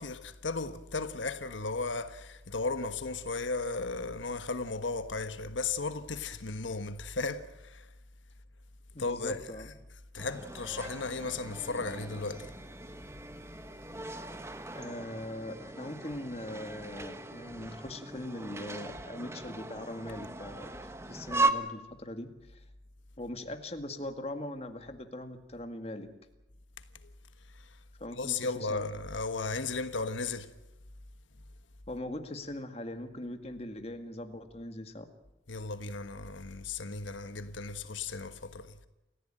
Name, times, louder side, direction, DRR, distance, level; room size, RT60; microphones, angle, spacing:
voice 1, 0.0-7.9 9.0-9.7 10.1-12.5 27.6-27.7 28.2-30.5 35.5-38.7, left 3 dB, 90° left, 1.3 m, -35 dB
voice 2, 9.0-9.7 14.7-20.7 21.1-22.6 23.2-26.1 28.0-28.9 31.9-35.1, left 1 dB, 35° left, 2.0 m, -41 dB
sound 1, 10.2-21.5, right 3 dB, 15° right, 1.2 m, -38 dB
29.0 x 15.0 x 8.9 m
head